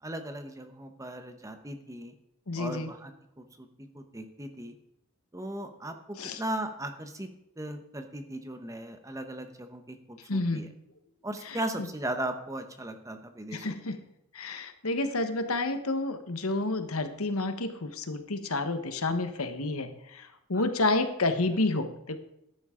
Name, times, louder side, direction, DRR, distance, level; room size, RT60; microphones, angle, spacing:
voice 1, 0.0-2.1 2.6-4.8 5.3-7.3 7.6-10.7 11.2-14.0 20.5-20.6, right 1 dB, 15° right, 7 dB, 0.9 m, -38 dB
voice 2, 2.5-2.9 6.2-6.4 10.3-10.7 13.5-14.0 14.3-22.2, left 2 dB, 80° left, 9 dB, 1.2 m, -30 dB
13.5 x 11.0 x 3.8 m, 0.83 s
head